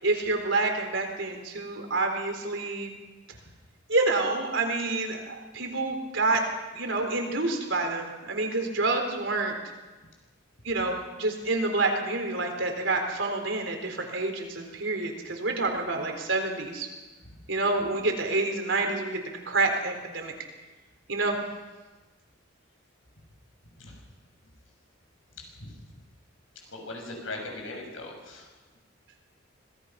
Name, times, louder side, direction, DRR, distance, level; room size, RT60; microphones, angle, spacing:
voice 1, 0.0-2.9 3.9-6.4 6.7-9.6 10.6-16.9 17.5-20.3 21.1-21.4, right 3 dB, 70° right, 3 dB, 4.0 m, -28 dB
voice 2, 25.4-25.7 26.5-28.5, left 2 dB, 80° left, 1 dB, 6.6 m, -40 dB
26.0 x 18.5 x 5.9 m, 1.2 s
head